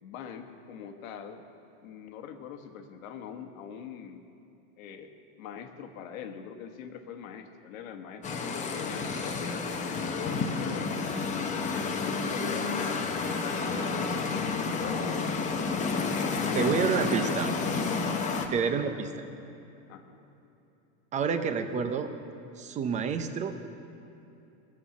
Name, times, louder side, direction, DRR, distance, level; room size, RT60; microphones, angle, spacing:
voice 1, 0.0-1.4 1.8-4.2 4.8-11.0 11.7-15.6 16.2-17.4 18.2-19.1 19.9-20.2, left 7 dB, 90° left, 6 dB, 1.3 m, -43 dB
sound 1, 8.2-18.5, left 4 dB, 20° left, 0.8 m, -30 dB
voice 2, 16.5-17.5 18.5-19.1 21.1-22.1 22.6-23.6, right 6 dB, 20° right, 8 dB, 0.6 m, -28 dB
18.0 x 7.4 x 7.0 m, 2.8 s
supercardioid pair, 150°, 39 cm